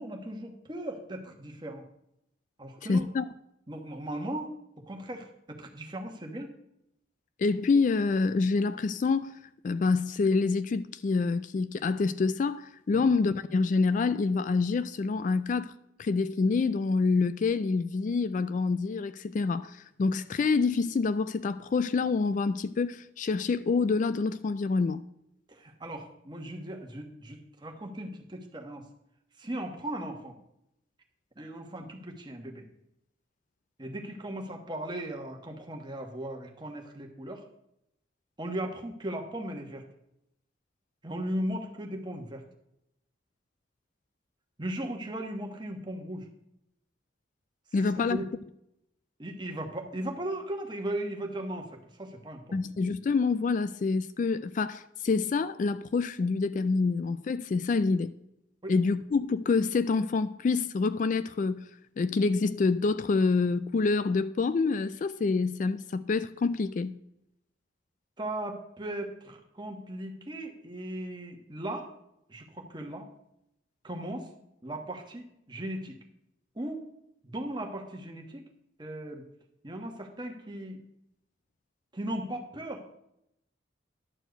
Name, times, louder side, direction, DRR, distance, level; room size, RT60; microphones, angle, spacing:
voice 1, 0.0-1.8 2.6-3.0 3.7-4.5 4.9-6.6 12.9-13.1 25.5-28.9 29.4-30.3 31.4-32.6 33.8-37.4 38.4-39.8 41.0-42.4 44.6-46.3 47.7-48.3 49.2-51.7 52.0-52.6 58.6-58.7 68.2-71.9 72.3-73.1 73.8-74.3 74.6-75.9 76.5-76.8 77.2-78.5 78.8-79.3 79.6-80.8 81.9-82.8, right 1 dB, 25° right, 1.3 m, -37 dB
voice 2, 2.9-3.2 7.4-15.7 16.0-25.0 47.7-48.2 52.5-58.1 58.7-61.7 62.0-67.0, left 4 dB, 45° left, 0.3 m, -27 dB
11.0 x 4.6 x 7.9 m
head